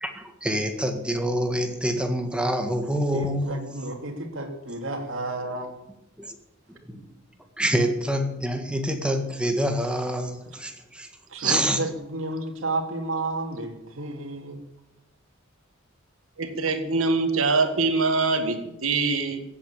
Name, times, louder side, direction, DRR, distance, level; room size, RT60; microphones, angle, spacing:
voice 1, 0.0-3.6 6.2-6.3 6.7-7.0 7.6-11.1 11.4-11.8, equal, 5° right, 5 dB, 1.7 m, -26 dB
voice 2, 3.1-5.9 11.3-14.6, right 2 dB, 65° right, 3 dB, 2.8 m, -32 dB
voice 3, 16.4-19.4, right 4 dB, 90° right, 7 dB, 1.8 m, -24 dB
15.5 x 8.5 x 8.7 m, 0.91 s
head